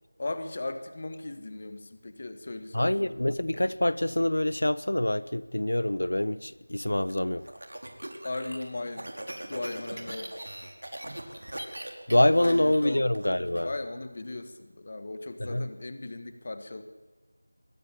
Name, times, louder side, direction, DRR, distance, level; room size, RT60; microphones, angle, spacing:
voice 1, 0.2-2.9 8.2-9.1 9.4-10.3 12.3-13.1 13.6-16.8, left 2 dB, 25° left, 10 dB, 1.4 m, -37 dB
voice 2, 2.7-7.4 12.1-13.7 15.4-15.7, left 1 dB, 80° left, 17 dB, 1.0 m, -25 dB
sound 1, 7.1-13.6, right 1 dB, 90° right, 5.0 m, -40 dB
23.0 x 19.0 x 10.0 m, 1.3 s
figure-of-eight pair, 180°, 0 cm